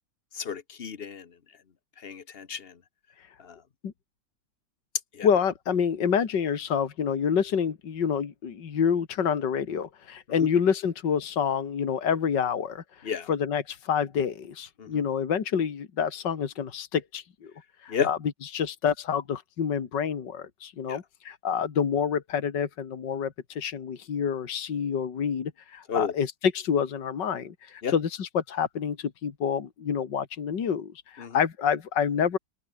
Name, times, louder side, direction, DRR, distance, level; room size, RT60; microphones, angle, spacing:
voice 1, 0.3-1.3 2.0-2.7 3.4-3.6 5.1-5.3 13.0-13.3 14.8-14.9 17.9-18.1 20.9-21.0 25.9-26.1 27.8-27.9 31.2-31.4, left 6 dB, 35° left, 1.1 m, -31 dB
voice 2, 5.2-17.5 17.8-32.4, left 7 dB, 70° left, 2.5 m, -28 dB
open air
omnidirectional pair, 2.0 m